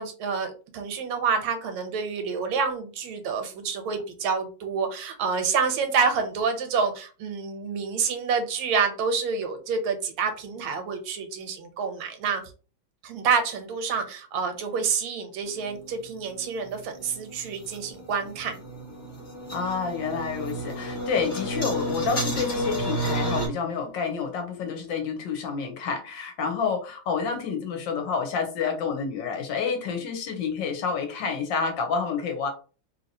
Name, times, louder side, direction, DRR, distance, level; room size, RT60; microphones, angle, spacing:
voice 1, 0.0-12.4 13.0-18.6, right 5 dB, 80° right, 6 dB, 1.4 m, -28 dB
sound 1, 15.5-23.5, equal, 40° left, 1.3 m, -32 dB
voice 2, 19.5-32.5, left 5 dB, 70° left, 4 dB, 1.2 m, -29 dB
3.2 x 2.7 x 2.6 m, 0.37 s
omnidirectional pair, 2.3 m